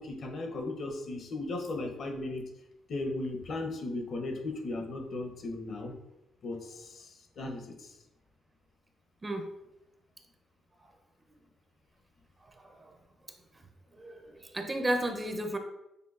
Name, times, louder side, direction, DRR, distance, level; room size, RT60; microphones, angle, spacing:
voice 1, 0.0-2.4 2.9-5.9 6.4-7.9, left 2 dB, 55° left, 3 dB, 0.8 m, -36 dB
voice 2, 13.9-15.6, right 1 dB, 25° right, 5 dB, 0.5 m, -33 dB
6.6 x 2.6 x 2.4 m, 0.89 s
cardioid pair, 90°, 0 cm